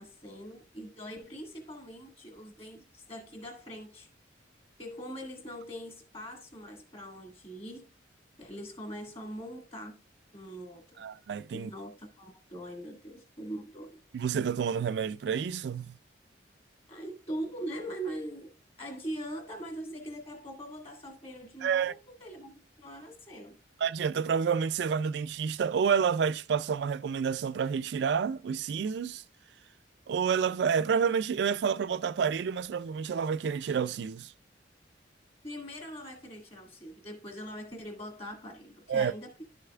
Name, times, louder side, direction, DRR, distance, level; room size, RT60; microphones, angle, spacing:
voice 1, 0.0-4.1 4.8-7.8 8.4-10.0 10.3-11.0 11.5-14.0 16.9-18.5 18.8-23.6 35.4-39.4, equal, 30° left, 1.8 m, -42 dB
voice 2, 11.0-11.7 14.1-15.9 21.6-21.9 23.8-29.2 30.1-34.3 38.9-39.1, right 6 dB, 60° right, 0.3 m, -29 dB
11.0 x 6.6 x 2.3 m
head